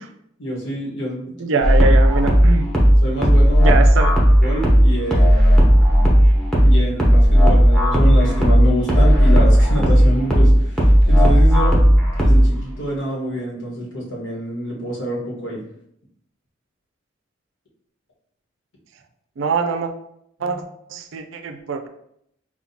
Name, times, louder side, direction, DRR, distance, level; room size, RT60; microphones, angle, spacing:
voice 1, 0.4-1.6 3.0-3.7 4.4-6.1 6.6-15.6 20.4-20.6, equal, 75° left, -4 dB, 1.3 m, -27 dB
voice 2, 1.4-2.7 3.6-4.2 19.4-19.9 20.4-20.6 20.9-21.9, right 4 dB, 85° right, 6 dB, 0.4 m, -23 dB
sound 1, 1.6-12.6, equal, ahead, 0.7 m, -13 dB
5.7 x 2.3 x 2.8 m, 0.74 s
head